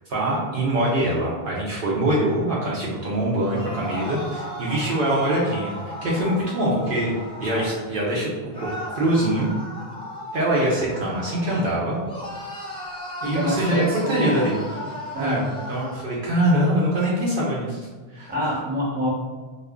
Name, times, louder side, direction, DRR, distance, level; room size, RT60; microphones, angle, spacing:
voice 1, 0.1-9.5 10.3-12.0 13.2-14.6 15.2-18.3, right 1 dB, 65° right, -6 dB, 0.7 m, -24 dB
sound 1, 3.5-7.8 8.5-11.7 12.0-16.0, left 1 dB, 10° left, 0.4 m, -35 dB
voice 2, 13.2-14.5 15.1-15.4 18.3-19.1, equal, 10° right, -9 dB, 0.9 m, -26 dB
2.4 x 2.1 x 3.5 m, 1.4 s
omnidirectional pair, 1.0 m